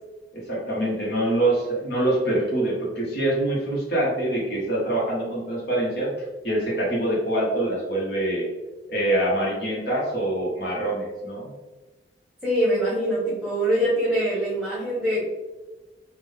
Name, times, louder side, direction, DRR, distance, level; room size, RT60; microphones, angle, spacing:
voice 1, 0.3-6.1 6.4-8.5 8.9-11.5, right 1 dB, 65° left, -4 dB, 1.4 m, -25 dB
voice 2, 12.4-15.3, right 1 dB, 5° right, -9 dB, 1.1 m, -23 dB
3.7 x 2.6 x 3.5 m, 1.2 s
head